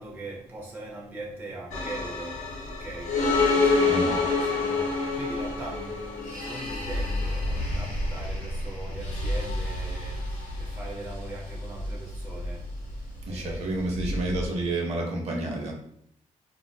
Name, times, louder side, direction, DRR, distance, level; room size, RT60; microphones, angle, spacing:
voice 1, 0.0-2.4 2.6-12.6 13.0-13.8, right 2 dB, 15° right, -3 dB, 0.6 m, -41 dB
sound 1, 1.7-14.5, left 3 dB, 60° left, 0.8 m, -28 dB
voice 2, 13.3-15.7, right 2 dB, 50° right, 0 dB, 0.7 m, -29 dB
3.7 x 2.4 x 2.2 m, 0.69 s
cardioid pair, 175°, 13 cm